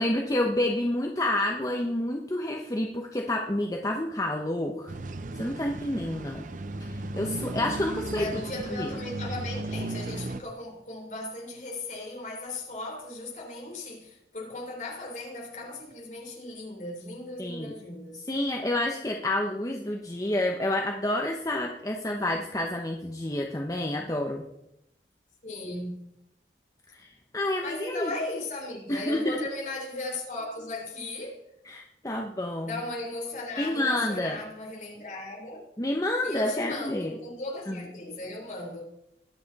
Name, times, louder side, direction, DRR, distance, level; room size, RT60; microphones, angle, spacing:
voice 1, 0.0-4.9 5.3-6.4 6.9-8.3 8.8-8.9 17.4-17.7 18.3-24.5 26.9-28.1 28.9-29.4 31.6-32.7 33.6-34.4 35.8-37.1 37.7-37.8, left 1 dB, 20° left, 0.9 m, -29 dB
sound 1, 4.9-10.4, right 2 dB, 45° right, 0.6 m, -35 dB
voice 2, 8.1-18.3 25.4-26.1 27.6-31.5 32.6-35.7 36.2-38.8, left 2 dB, 45° left, 3.8 m, -37 dB
21.5 x 7.5 x 4.1 m
head